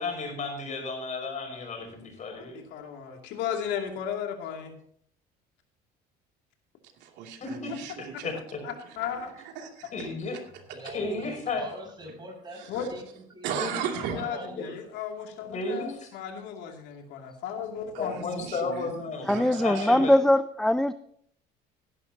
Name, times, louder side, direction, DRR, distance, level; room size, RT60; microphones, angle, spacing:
voice 1, 0.0-2.6 7.4-7.7 8.2-8.6 9.9-10.4 10.9-11.7 13.5-13.9 14.6-14.7 15.5-16.1 18.0-20.1, left 3 dB, 40° left, 1 dB, 5.5 m, -33 dB
voice 2, 2.4-4.7 8.6-9.3 12.7-12.9 14.1-18.5, left 8 dB, 75° left, 2 dB, 2.7 m, -35 dB
voice 3, 7.0-8.4 8.9-9.0 9.4-10.1 12.5-12.9 13.4-14.3 17.9-20.1, right 7 dB, 75° right, 2 dB, 2.6 m, -37 dB
voice 4, 10.7-14.7, right 1 dB, 25° right, 1 dB, 6.1 m, -44 dB
voice 5, 19.3-20.9, left 1 dB, 5° left, 13 dB, 0.3 m, -21 dB
16.5 x 11.0 x 2.9 m, 0.65 s
cardioid pair, 110°, 18 cm